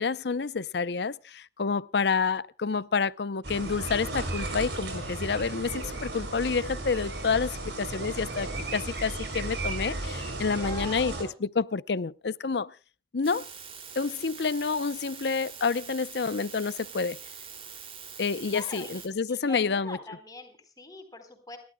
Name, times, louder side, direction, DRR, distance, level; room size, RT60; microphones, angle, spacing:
voice 1, 0.0-11.1 11.4-12.7 13.1-13.5 14.0-17.2 18.2-20.0, left 5 dB, 75° left, 0.6 m, -29 dB
sound 1, 3.4-11.2, right 2 dB, 80° right, 5.8 m, -34 dB
voice 2, 10.5-11.3 18.3-21.6, left 2 dB, 20° left, 4.0 m, -43 dB
sound 2, 13.2-19.1, right 7 dB, 35° right, 2.6 m, -44 dB
30.0 x 13.0 x 2.2 m
head